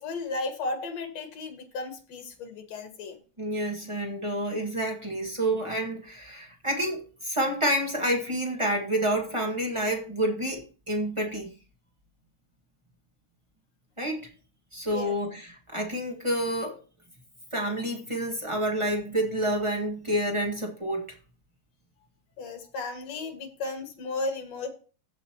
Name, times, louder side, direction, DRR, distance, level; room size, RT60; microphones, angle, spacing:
voice 1, 0.0-3.2 14.9-15.2 22.4-24.7, left 3 dB, 60° left, 2.8 m, -34 dB
voice 2, 3.4-11.5 14.0-14.3 14.7-16.8 17.5-21.1, right 1 dB, 30° right, 0.5 m, -29 dB
15.5 x 5.5 x 2.9 m
omnidirectional pair, 3.7 m